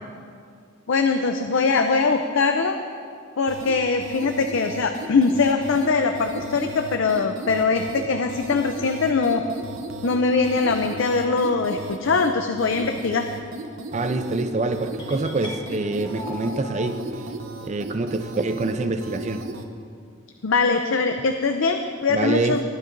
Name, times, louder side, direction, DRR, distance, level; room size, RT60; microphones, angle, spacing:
voice 1, 0.9-2.8 3.4-9.4 10.0-13.3 20.4-22.6, left 4 dB, 70° left, 6 dB, 0.5 m, -22 dB
sound 1, 3.5-19.7, right 2 dB, 85° right, 0.8 m, -36 dB
voice 2, 13.9-17.0 17.6-19.5 22.1-22.6, right 3 dB, 35° right, 8 dB, 0.5 m, -25 dB
sound 2, 15.0-17.0, left 2 dB, 25° left, 1.0 m, -38 dB
19.0 x 10.5 x 2.6 m, 2.3 s
head